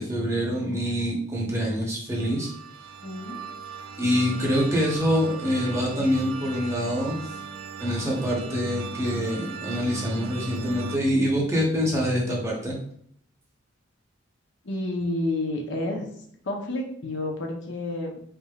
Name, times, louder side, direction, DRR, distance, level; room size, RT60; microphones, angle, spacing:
voice 1, 0.0-2.5 4.0-7.2 7.8-12.8, equal, 15° right, -3 dB, 0.8 m, -25 dB
sound 1, 2.2-11.0, right 6 dB, 80° right, 0.4 m, -38 dB
voice 2, 3.0-3.4 14.6-16.0 16.4-18.2, left 2 dB, 60° left, 1 dB, 0.7 m, -30 dB
4.0 x 3.5 x 2.3 m, 0.65 s
head